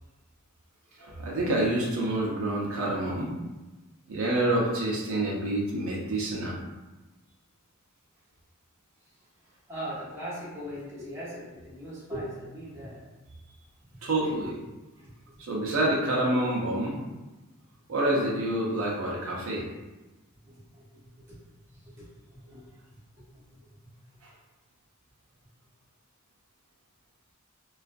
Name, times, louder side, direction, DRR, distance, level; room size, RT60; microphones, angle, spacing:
voice 1, 1.0-3.3 4.1-6.6 14.0-14.6 15.5-17.0 17.9-19.6, right 1 dB, 70° right, -3 dB, 0.5 m, -27 dB
voice 2, 9.4-13.0 13.9-14.3 14.9-15.4 20.4-21.4 21.7-22.8 23.3-23.9, equal, 15° right, -9 dB, 0.9 m, -41 dB
2.3 x 2.2 x 2.5 m, 1.1 s
head